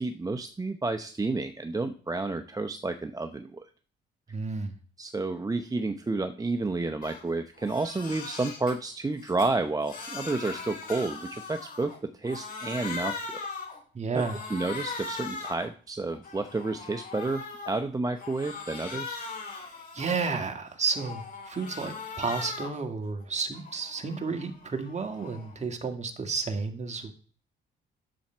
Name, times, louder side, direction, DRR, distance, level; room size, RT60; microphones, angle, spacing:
voice 1, 0.0-3.7 5.0-13.4 14.1-14.2 14.5-19.2, right 3 dB, 15° right, 7 dB, 0.7 m, -30 dB
voice 2, 4.3-4.7 13.9-14.5 19.6-27.1, right 4 dB, 35° right, 5 dB, 1.8 m, -32 dB
Crying sobbing, 7.0-7.2 7.6-8.7 9.2-12.0 12.2-13.8 14.2-15.7 16.1-17.8 18.2-20.5 20.9-22.8 23.2-25.6, left 4 dB, 45° left, 4.8 m, -40 dB
10.0 x 7.1 x 4.4 m, 0.42 s
cardioid pair, 90°, 20 cm